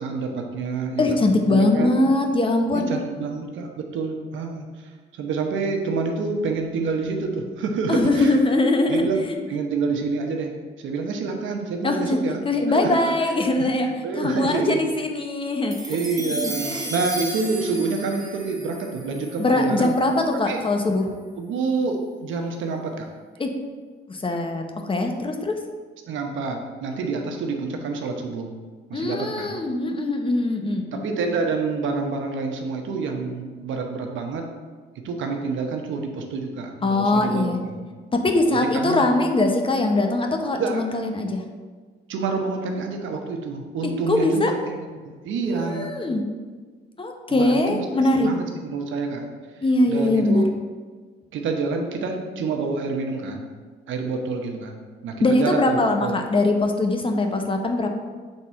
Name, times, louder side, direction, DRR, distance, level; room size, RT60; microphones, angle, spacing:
voice 1, 0.0-1.9 2.7-8.4 8.9-12.4 12.7-13.0 13.5-14.9 15.9-19.9 20.4-20.6 21.4-23.1 26.1-28.5 28.9-29.6 30.9-34.5 35.0-37.9 38.5-39.1 40.5-40.8 42.1-45.9 47.3-49.4 49.9-50.5 51.3-53.4 53.9-56.2, right 4 dB, 75° right, 3 dB, 0.9 m, -28 dB
voice 2, 1.0-2.9 7.9-9.3 11.8-12.2 12.4-16.0 16.3-16.4 16.6-16.9 19.4-21.1 23.4-23.5 24.1-25.6 28.9-31.0 36.8-37.6 38.1-41.4 44.1-44.5 45.4-46.2 47.0-48.3 49.6-50.4 55.2-57.9, left 2 dB, 25° left, 3 dB, 0.8 m, -22 dB
sound 1, 15.7-20.2, right 1 dB, 20° right, 1.3 m, -34 dB
6.7 x 3.6 x 4.3 m, 1.5 s
cardioid pair, 90°, 20 cm